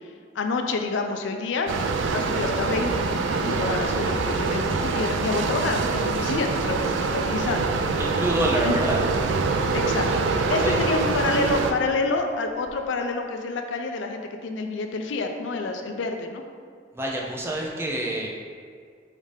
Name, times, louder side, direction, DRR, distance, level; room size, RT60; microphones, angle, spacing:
voice 1, 0.3-1.7 2.1-7.7 8.6-8.8 9.7-16.4, left 3 dB, 85° left, 5 dB, 0.4 m, -28 dB
sound 1, 1.7-11.7, right 4 dB, 90° right, 0.3 m, -25 dB
voice 2, 8.0-9.0 10.6-10.8 16.9-18.3, right 1 dB, 15° right, -2 dB, 0.4 m, -26 dB
5.0 x 2.7 x 3.3 m, 2.1 s
head